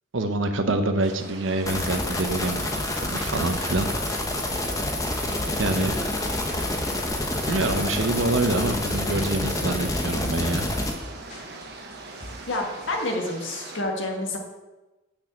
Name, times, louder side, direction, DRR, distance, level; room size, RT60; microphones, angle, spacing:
voice 1, 0.1-3.9 5.6-6.0 7.5-10.7, right 2 dB, 70° right, 7 dB, 0.9 m, -26 dB
sound 1, 1.0-13.8, right 3 dB, 55° right, 1.2 m, -42 dB
sound 2, 1.7-10.9, left 1 dB, 15° left, 0.9 m, -28 dB
sound 3, 3.8-13.0, left 1 dB, 35° left, 1.7 m, -43 dB
voice 2, 12.5-14.4, left 2 dB, 70° left, 1 dB, 1.7 m, -28 dB
6.6 x 6.3 x 7.4 m, 1.1 s
head